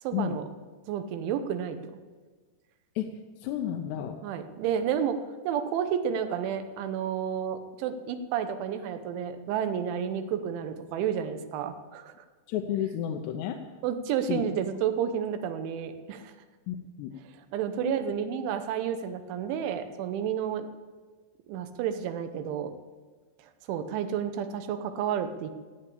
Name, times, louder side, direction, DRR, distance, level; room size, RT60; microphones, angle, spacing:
voice 1, 0.0-0.5 0.9-2.0 4.2-5.2 5.5-12.1 13.8-16.4 17.5-20.7 21.5-22.8 23.7-25.5, right 8 dB, 90° right, 8 dB, 3.4 m, -31 dB
voice 2, 3.4-4.2 12.5-13.6 14.3-14.4 16.7-17.1 17.8-18.0, left 10 dB, 80° left, 3 dB, 2.8 m, -31 dB
16.0 x 8.5 x 8.6 m, 1.4 s
omnidirectional pair, 5.3 m